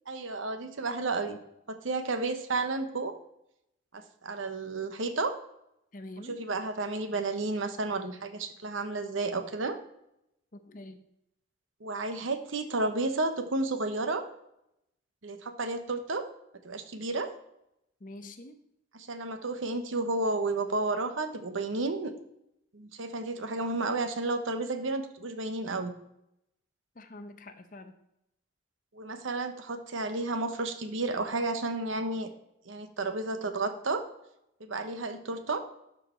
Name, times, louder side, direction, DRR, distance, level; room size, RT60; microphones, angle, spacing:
voice 1, 0.1-1.4 1.7-3.1 3.9-5.3 6.3-9.8 11.8-14.2 15.2-16.2 16.6-17.3 18.9-22.1 22.7-25.9 28.9-32.3 32.7-34.0 34.6-35.6, right 3 dB, 80° right, 8 dB, 0.9 m, -32 dB
voice 2, 5.9-6.4 10.5-11.0 18.0-18.6 27.0-28.0, left 1 dB, 40° left, 8 dB, 0.7 m, -45 dB
12.0 x 4.7 x 4.4 m, 0.82 s
head